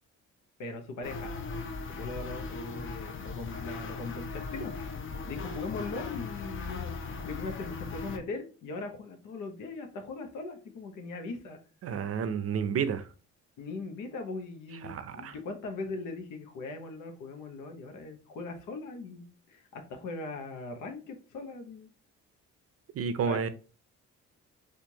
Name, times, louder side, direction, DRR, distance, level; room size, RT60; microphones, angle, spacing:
voice 1, 0.6-1.3 1.9-4.7 5.2-11.6 13.6-21.9 23.3-23.4, left 3 dB, 80° left, 5 dB, 0.9 m, -40 dB
sound 1, 1.0-8.2, left 4 dB, 40° left, 0.6 m, -38 dB
voice 2, 11.8-13.0 14.8-15.3 22.9-23.5, right 7 dB, 50° right, 11 dB, 0.5 m, -30 dB
4.4 x 2.5 x 2.8 m, 0.35 s
cardioid pair, 90°, 30 cm